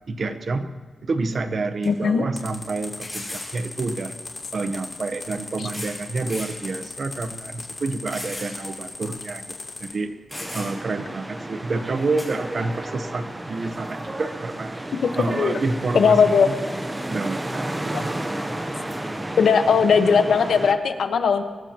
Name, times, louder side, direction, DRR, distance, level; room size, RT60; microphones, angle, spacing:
voice 1, 0.1-0.7 1.0-4.1 4.5-10.1 10.5-14.8 15.2-16.2 16.4-16.6 17.1-18.2, right 3 dB, 45° right, 9 dB, 0.9 m, -28 dB
sound 1, 1.2-1.3 1.8-1.9 3.0-3.5 4.7-4.8 5.6-6.0 6.3-6.6 7.1-7.2 8.1-8.6 8.9-9.0 9.9-10.0 10.3-10.9 12.2-12.3, left 1 dB, 10° left, 4.6 m, -36 dB
voice 2, 1.8-2.2 15.0-15.6 15.9-16.5 19.4-21.4, left 6 dB, 80° left, 7 dB, 1.1 m, -18 dB
sound 2, 2.4-9.9, left 3 dB, 30° left, 3.1 m, -37 dB
sound 3, 10.3-20.7, right 1 dB, 15° right, 0.9 m, -32 dB
23.0 x 20.0 x 3.0 m, 1.5 s
wide cardioid pair, 180°, 0 cm